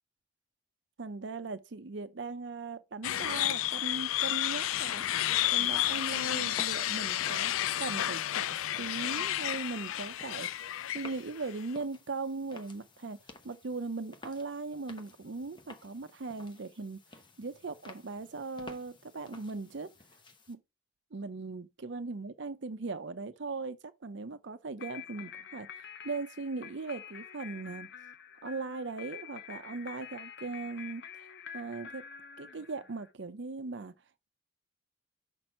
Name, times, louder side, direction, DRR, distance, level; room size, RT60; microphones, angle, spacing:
voice 1, 1.0-7.5 7.8-10.7 10.9-13.2 13.4-17.0 17.4-19.9 20.5-20.6 21.1-25.7 26.0-27.9 28.4-31.3 31.5-32.1 32.4-33.9, right 3 dB, 60° right, 0.6 m, -39 dB
sound 1, 3.0-11.6, left 13 dB, 85° left, 0.3 m, -31 dB
sound 2, 5.0-20.5, left 2 dB, 25° left, 0.9 m, -54 dB
sound 3, 24.8-33.1, left 8 dB, 55° left, 0.8 m, -47 dB
6.2 x 5.3 x 4.3 m
head